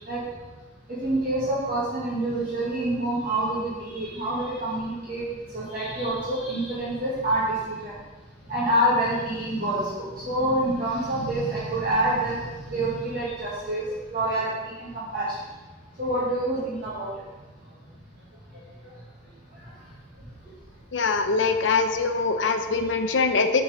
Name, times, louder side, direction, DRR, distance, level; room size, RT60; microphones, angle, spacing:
voice 1, 1.0-5.2 5.5-7.9 8.5-12.4 12.7-14.5 15.1-15.3 16.0-17.1 21.3-21.4, right 1 dB, 45° right, -9 dB, 1.8 m, -26 dB
voice 2, 20.9-23.6, left 4 dB, 70° left, 7 dB, 0.7 m, -23 dB
7.2 x 4.7 x 5.0 m, 1.2 s
head